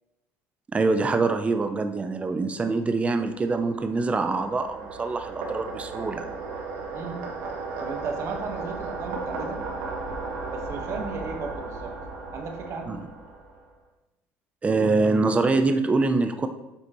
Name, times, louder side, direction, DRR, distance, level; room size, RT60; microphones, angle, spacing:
voice 1, 0.7-6.4 12.9-13.0 14.6-16.5, right 3 dB, 20° right, 7 dB, 0.6 m, -24 dB
sound 1, 3.0-13.7, right 3 dB, 80° right, 1.6 m, -36 dB
voice 2, 7.8-9.6 10.5-11.9 12.3-13.0, right 4 dB, 50° right, 3 dB, 1.5 m, -35 dB
8.1 x 5.4 x 3.1 m, 0.94 s
supercardioid pair, 95°, 6 cm